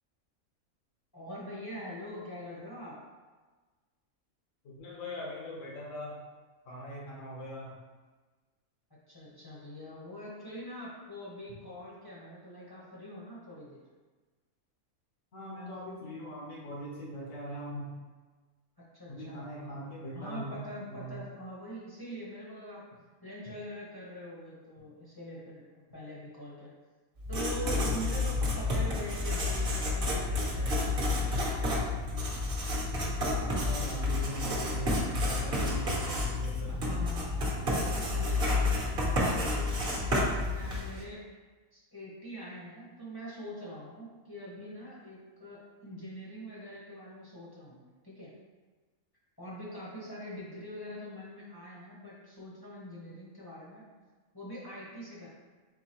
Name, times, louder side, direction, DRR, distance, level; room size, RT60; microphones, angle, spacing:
voice 1, 1.1-2.9 9.1-13.8 18.9-19.8 20.1-22.8 23.2-26.7 27.3-31.6 36.7-41.2 41.7-48.3 49.4-53.8 54.3-55.3, equal, 20° left, -7 dB, 0.9 m, -44 dB
voice 2, 4.6-6.2 6.6-7.8 15.3-18.0 19.1-20.6 20.9-21.2 33.2-37.0, equal, 65° left, -3 dB, 1.4 m, -41 dB
Writing, 27.2-41.0, left 2 dB, 45° right, 1.2 m, -30 dB
4.6 x 3.9 x 3.0 m, 1.3 s
omnidirectional pair, 1.5 m